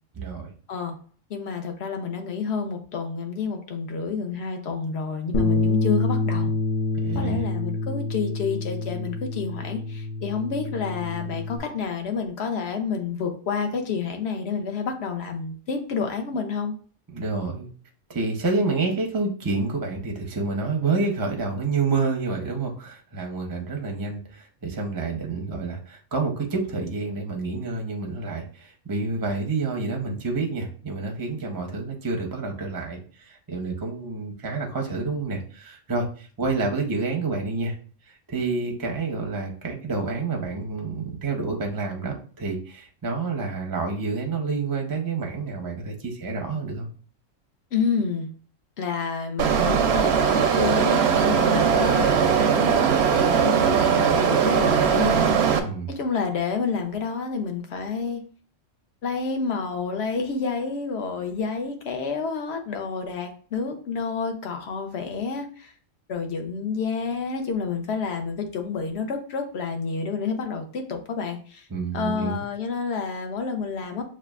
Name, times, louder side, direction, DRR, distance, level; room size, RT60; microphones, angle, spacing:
voice 1, 0.2-0.5 7.0-7.4 17.1-17.7 18.1-37.7 38.1-46.9 55.6-55.9 71.7-72.4, right 4 dB, 25° right, 2 dB, 0.5 m, -28 dB
voice 2, 1.3-6.5 7.1-16.7 47.7-48.3 48.8-55.6 55.9-58.2 59.0-65.7 66.1-71.7 71.9-74.0, left 5 dB, 60° left, 5 dB, 0.9 m, -29 dB
Bass guitar, 5.3-11.6, left 3 dB, 40° left, 0.4 m, -27 dB
sound 1, 49.4-55.6, right 7 dB, 65° right, 0.7 m, -20 dB
6.5 x 2.4 x 2.4 m, 0.42 s
omnidirectional pair, 1.3 m